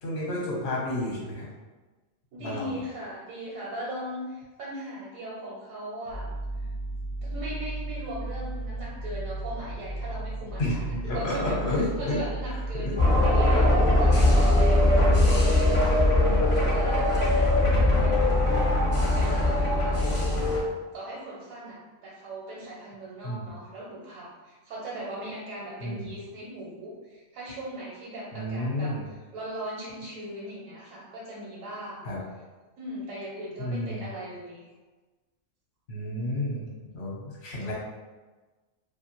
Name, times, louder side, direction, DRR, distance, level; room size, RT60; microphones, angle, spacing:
voice 1, 0.0-1.5 2.4-2.7 10.6-12.2 12.8-13.0 13.2-13.3 16.1-16.5 23.2-23.5 25.8-26.0 28.3-29.0 32.0-32.2 33.6-34.1 35.9-36.7 36.9-37.7, left 1 dB, 55° left, -4 dB, 1.0 m, -31 dB
voice 2, 2.3-6.3 6.6-6.7 7.2-18.3 18.9-32.1 32.8-34.7, right 1 dB, 80° right, -6 dB, 1.1 m, -39 dB
sound 1, 6.1-13.2, right 2 dB, 40° right, 0.5 m, -35 dB
sound 2, 13.0-20.6, left 1 dB, 35° left, 0.6 m, -21 dB
2.5 x 2.5 x 2.9 m, 1.3 s
omnidirectional pair, 1.4 m